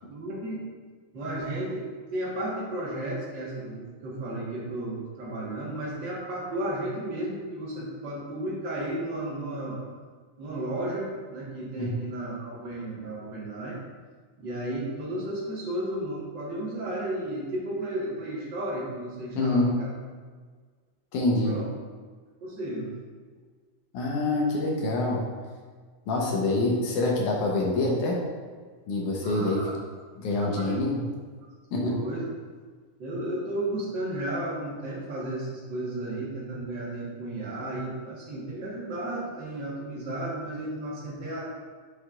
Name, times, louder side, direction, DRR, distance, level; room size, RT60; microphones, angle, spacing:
voice 1, 0.1-0.6 1.1-9.8 10.4-13.8 14.4-19.9 21.4-21.6 22.4-22.9 29.2-29.8 30.4-30.8 31.8-32.2 33.0-41.4, right 1 dB, 45° right, -5 dB, 1.7 m, -33 dB
voice 2, 19.4-19.8 21.1-21.6 23.9-25.3 26.1-28.2 28.9-29.6 30.2-31.1 31.7-31.9, left 2 dB, 75° left, -2 dB, 2.4 m, -26 dB
7.7 x 6.4 x 2.5 m, 1.5 s
omnidirectional pair, 3.7 m